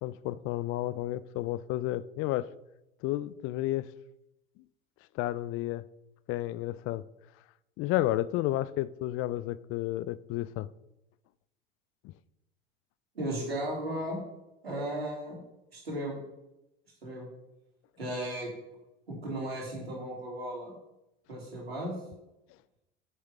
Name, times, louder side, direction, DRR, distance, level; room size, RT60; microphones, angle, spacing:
voice 1, 0.0-2.5 3.0-3.9 5.1-5.8 6.3-7.0 7.8-10.7 12.0-12.1, left 15 dB, 45° left, 0.5 m, -31 dB
voice 2, 13.2-14.2 14.6-15.4 15.7-16.2 17.0-17.3 18.0-18.5 19.1-20.7 21.3-22.0, right 1 dB, 90° right, 3.5 m, -35 dB
7.6 x 6.4 x 6.0 m
hypercardioid pair, 75°, 30 cm